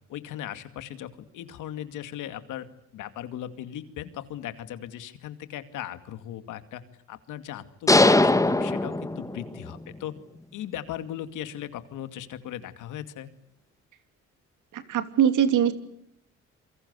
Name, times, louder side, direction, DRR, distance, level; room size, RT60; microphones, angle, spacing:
voice 1, 0.1-2.7 2.9-6.8 7.1-10.1 10.5-13.3, left 11 dB, 85° left, 11 dB, 2.4 m, -38 dB
sound 1, 7.9-9.7, left 2 dB, 10° left, 1.5 m, -20 dB
voice 2, 14.7-15.7, right 9 dB, 80° right, 10 dB, 3.0 m, -22 dB
28.0 x 24.0 x 8.2 m, 0.71 s
cardioid pair, 90°, 30 cm